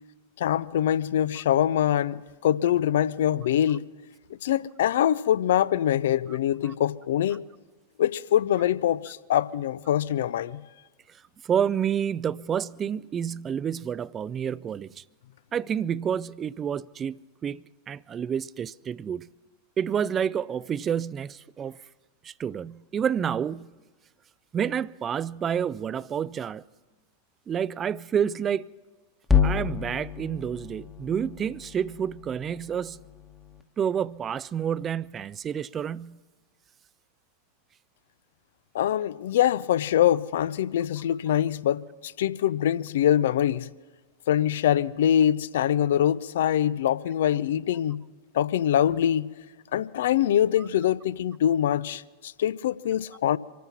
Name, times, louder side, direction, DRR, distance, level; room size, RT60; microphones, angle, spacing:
voice 1, 0.4-3.8 4.4-7.4 8.0-10.6 38.7-43.7 44.3-48.0 48.3-49.3 49.7-53.4, left 11 dB, 60° left, 0.5 m, -24 dB
voice 2, 11.4-15.0 15.5-19.3 19.8-21.8 22.2-23.7 24.5-26.6 27.5-28.7 29.4-33.0 33.8-36.2, right 8 dB, 25° right, 0.4 m, -29 dB
sound 1, 29.2-33.6, left 7 dB, 10° left, 1.1 m, -29 dB
26.0 x 9.3 x 5.9 m
figure-of-eight pair, 90°, 0 cm